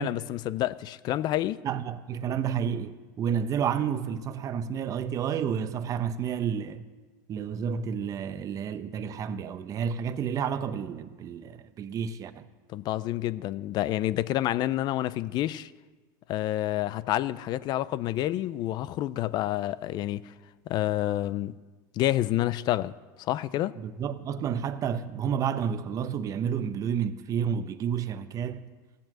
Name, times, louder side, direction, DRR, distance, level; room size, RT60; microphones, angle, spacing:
voice 1, 0.0-1.6 12.7-15.7 16.3-20.3 20.7-21.5 21.9-22.9 23.2-23.7, left 14 dB, 45° left, 0.5 m, -28 dB
voice 2, 1.6-6.9 7.3-12.5 23.8-28.7, right 8 dB, 35° right, 0.8 m, -30 dB
16.0 x 7.4 x 7.7 m
supercardioid pair, 125°, 10 cm